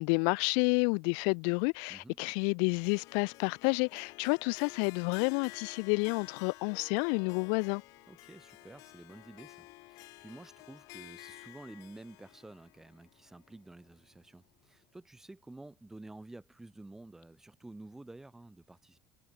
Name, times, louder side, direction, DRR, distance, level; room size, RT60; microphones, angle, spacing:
voice 1, 0.0-7.8, left 40 dB or more, 75° left, 0.4 m, -30 dB
Harp, 2.8-14.1, left 22 dB, 60° left, 4.2 m, -52 dB
voice 2, 8.1-19.0, right 2 dB, 5° right, 2.1 m, -51 dB
cardioid pair, 165°, 6 cm